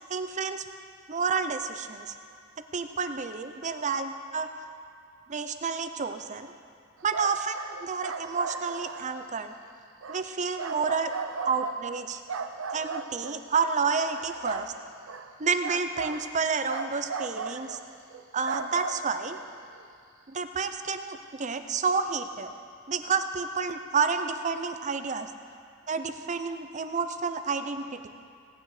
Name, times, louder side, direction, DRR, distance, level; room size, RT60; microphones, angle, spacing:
voice 1, 0.1-0.6 1.1-2.2 2.7-4.5 5.3-6.5 7.0-9.5 10.1-11.1 11.4-12.2 12.7-14.7 15.4-17.8 18.3-19.4 20.3-22.5 22.9-25.3 25.9-28.1, right 5 dB, 35° right, 8 dB, 0.6 m, -30 dB
sound 1, 7.0-9.3 10.0-10.3 10.6-12.0 12.3-13.4 13.8-14.7 15.1-15.3 15.6-16.3 16.7-17.8 18.1-19.9, right 5 dB, 85° right, 0.7 m, -37 dB
17.0 x 9.3 x 4.9 m, 2.3 s
head